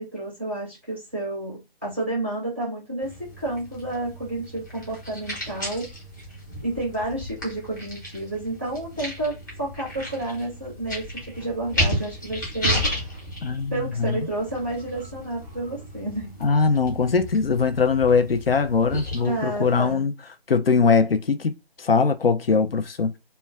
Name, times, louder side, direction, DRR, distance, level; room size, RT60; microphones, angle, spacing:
voice 1, 0.0-5.9 6.6-12.8 13.7-16.4 19.2-20.1, right 2 dB, 10° right, 0.6 m, -30 dB
sound 1, 3.0-19.9, equal, 20° left, 0.8 m, -33 dB
voice 2, 13.4-14.2 16.4-20.1 20.5-23.1, left 5 dB, 70° left, 0.5 m, -21 dB
2.2 x 2.2 x 3.4 m
figure-of-eight pair, 155°, 30 cm